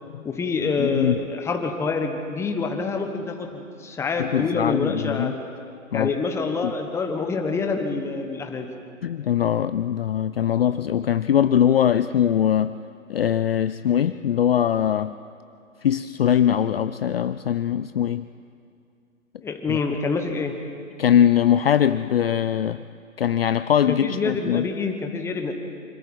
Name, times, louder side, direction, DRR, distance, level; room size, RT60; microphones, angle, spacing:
voice 1, 0.2-5.4 5.9-8.7 19.4-20.6 23.9-25.5, left 4 dB, 5° left, 4 dB, 1.1 m, -26 dB
voice 2, 0.8-1.1 4.2-5.3 5.9-6.1 6.6-6.7 9.0-12.8 13.1-15.1 15.8-18.2 19.7-19.8 21.0-22.8 23.2-24.7, left 9 dB, 45° left, 12 dB, 0.5 m, -21 dB
25.5 x 13.5 x 7.8 m, 2.4 s
figure-of-eight pair, 135°, 41 cm